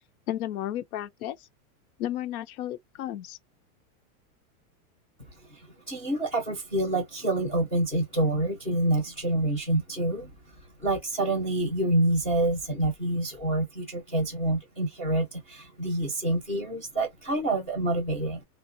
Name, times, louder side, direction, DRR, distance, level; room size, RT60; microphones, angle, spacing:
voice 1, 0.3-1.5 2.0-3.4, left 12 dB, 85° left, 0.6 m, -33 dB
voice 2, 5.9-10.3 10.8-18.4, right 1 dB, 10° left, 0.3 m, -27 dB
3.3 x 2.0 x 2.5 m
supercardioid pair, 165°, 43 cm